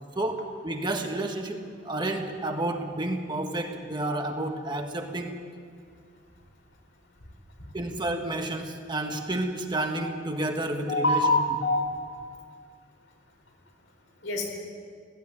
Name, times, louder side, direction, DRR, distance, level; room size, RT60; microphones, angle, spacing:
voice 1, 0.1-5.4 7.7-11.4, right 1 dB, 25° right, 3 dB, 1.5 m, -30 dB
voice 2, 10.9-12.2 14.2-14.5, left 2 dB, 75° left, 1 dB, 4.7 m, -25 dB
17.5 x 15.5 x 9.7 m, 2.1 s
head